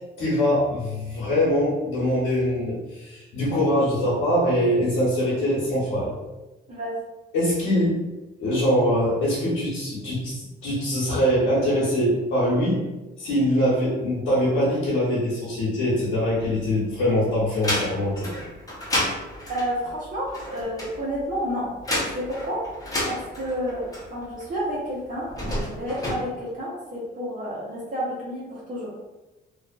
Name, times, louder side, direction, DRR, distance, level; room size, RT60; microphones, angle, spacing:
voice 1, 0.2-6.1 7.3-8.0 8.4-12.8 13.2-18.4, equal, 85° left, -9 dB, 0.9 m, -23 dB
sound 1, 16.1-17.0 17.4-24.5 25.2-26.2, left 1 dB, 20° left, 0.8 m, -30 dB
voice 2, 19.5-21.7 22.1-22.6 23.1-28.9, equal, 40° right, -6 dB, 0.8 m, -30 dB
2.5 x 2.3 x 2.4 m, 1.1 s
cardioid pair, 90°, 20 cm